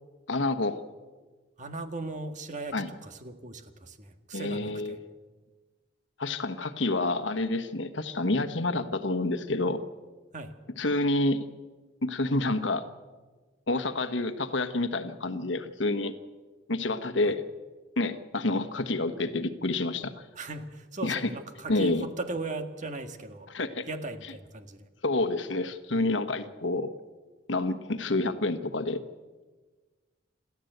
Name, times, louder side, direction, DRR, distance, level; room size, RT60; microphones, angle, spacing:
voice 1, 0.3-0.8 2.7-2.9 4.3-5.0 6.2-9.8 10.8-11.5 12.0-12.8 13.7-16.1 16.7-17.4 18.0-20.2 21.0-21.3 21.7-22.0 23.5-23.9 25.0-26.9 27.5-29.0, left 2 dB, 70° left, 10 dB, 1.3 m, -28 dB
voice 2, 1.6-5.0 10.3-10.5 20.3-23.5 23.9-24.9, right 2 dB, 40° right, 7 dB, 1.7 m, -38 dB
28.0 x 14.0 x 8.0 m, 1.4 s
head